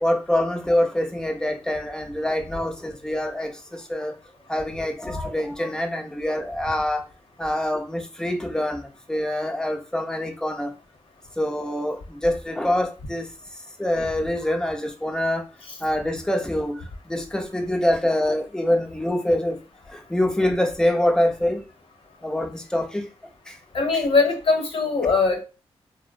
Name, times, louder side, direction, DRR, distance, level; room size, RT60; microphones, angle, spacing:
voice 1, 0.0-4.1 4.5-7.0 7.4-10.7 11.4-13.3 13.8-15.4 15.8-16.8 17.1-19.6 20.1-21.6 22.2-23.0, left 1 dB, 5° left, 0.5 m, -25 dB
voice 2, 23.7-25.4, left 4 dB, 55° left, 0.9 m, -21 dB
2.8 x 2.0 x 2.5 m
cardioid pair, 80°, 11 cm